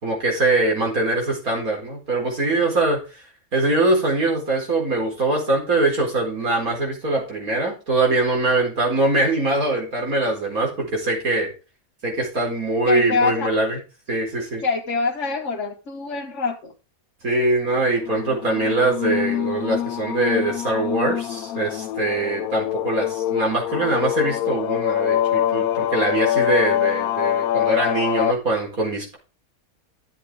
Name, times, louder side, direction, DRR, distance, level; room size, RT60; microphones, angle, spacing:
voice 1, 0.0-3.0 3.5-11.5 12.0-13.8 14.1-14.6 17.2-29.2, right 2 dB, 75° right, -1 dB, 4.7 m, -22 dB
voice 2, 12.8-13.5 14.6-16.7, left 4 dB, 55° left, 1 dB, 1.6 m, -24 dB
sound 1, 18.0-28.3, left 12 dB, 80° left, 1.1 m, -24 dB
12.0 x 7.8 x 3.6 m, 0.32 s
omnidirectional pair, 1.5 m